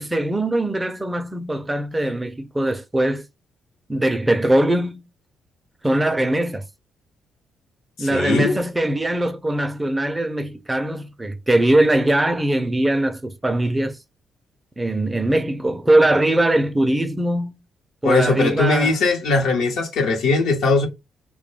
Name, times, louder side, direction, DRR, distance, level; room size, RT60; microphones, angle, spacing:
voice 1, 0.0-3.3 3.9-5.1 5.8-6.6 8.0-14.0 14.8-17.6 18.0-19.0, right 1 dB, 15° right, 0.4 m, -21 dB
voice 2, 8.0-8.6 18.0-20.9, left 3 dB, 80° left, 0.8 m, -20 dB
2.2 x 2.1 x 3.2 m
cardioid pair, 90°, 0 cm